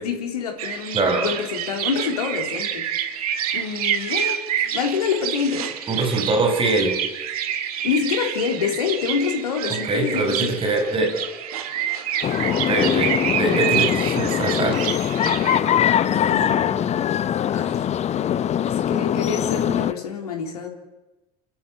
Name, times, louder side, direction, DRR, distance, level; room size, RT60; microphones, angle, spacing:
voice 1, 0.0-2.9 3.5-5.7 7.8-10.6 16.1-17.2 17.5-17.8 18.6-20.7, left 6 dB, 70° left, 4 dB, 3.4 m, -27 dB
sound 1, 0.6-15.6, right 9 dB, 65° right, 1.9 m, -28 dB
voice 2, 0.9-1.3 5.9-7.0 9.9-11.2 12.5-14.8, right 2 dB, 25° right, 6 dB, 5.8 m, -23 dB
sound 2, 12.2-19.9, left 10 dB, 35° left, 1.0 m, -22 dB
29.0 x 14.0 x 8.2 m, 1.1 s
figure-of-eight pair, 65°, 20 cm